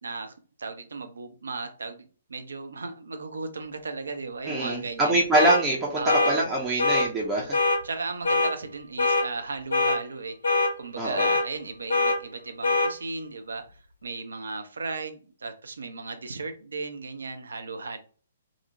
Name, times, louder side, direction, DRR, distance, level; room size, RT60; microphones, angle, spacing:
voice 1, 0.0-5.2 6.0-6.4 7.8-10.4 10.8-18.0, right 3 dB, 65° right, 0.5 m, -36 dB
voice 2, 4.5-7.6 11.0-11.3, right 2 dB, 15° right, 0.5 m, -24 dB
sound 1, 5.3-5.6 6.1-6.3 6.8-7.1 7.5-7.8 8.2-8.5 9.0-9.2 9.7-10.0 10.4-10.7 11.2-11.4 11.9-12.2 12.6-12.9, left 2 dB, 70° left, 0.5 m, -22 dB
2.5 x 2.0 x 2.9 m
figure-of-eight pair, 125°, 0 cm